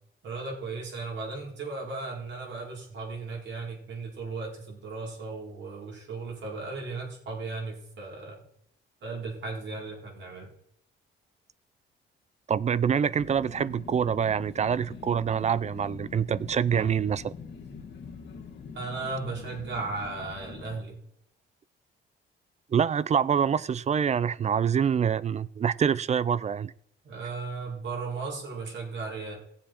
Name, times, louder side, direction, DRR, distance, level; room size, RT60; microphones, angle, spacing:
voice 1, 0.2-8.4 9.0-10.5 16.7-16.9 18.7-21.0 27.0-29.4, right 3 dB, 65° right, 4.1 m, -36 dB
voice 2, 12.5-17.3 22.7-26.7, right 7 dB, 35° right, 0.5 m, -26 dB
sound 1, 13.2-20.8, left 5 dB, 60° left, 1.6 m, -44 dB
17.0 x 7.3 x 4.4 m
cardioid pair, 90°, 20 cm